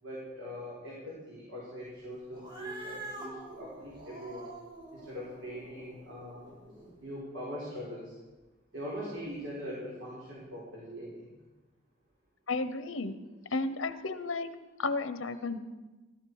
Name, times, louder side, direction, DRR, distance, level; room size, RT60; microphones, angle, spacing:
voice 1, 0.0-4.5 4.9-6.5 7.0-8.2 8.7-11.4, equal, 70° right, -6 dB, 4.6 m, -42 dB
Cat, 2.3-7.0, right 2 dB, 25° right, 3.1 m, -46 dB
voice 2, 12.5-13.2 13.5-14.5 14.8-15.6, left 3 dB, 90° left, 11 dB, 0.9 m, -33 dB
17.0 x 13.0 x 4.8 m, 1.2 s
head